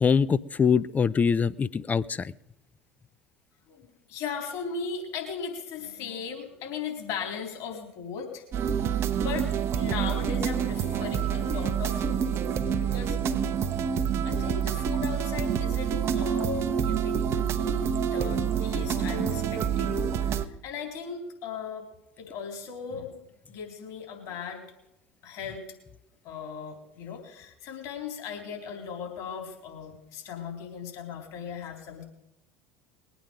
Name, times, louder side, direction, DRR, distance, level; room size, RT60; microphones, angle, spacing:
voice 1, 0.0-2.3, left 6 dB, 25° left, 17 dB, 0.6 m, -23 dB
voice 2, 3.7-8.4 8.9-13.2 14.2-21.9 22.2-24.6 25.2-25.6 26.2-32.0, left 6 dB, 55° left, 3 dB, 3.7 m, -38 dB
sound 1, 8.5-20.4, right 8 dB, 40° right, 1.0 m, -27 dB
21.5 x 9.1 x 5.1 m, 0.88 s
figure-of-eight pair, 70°, 7 cm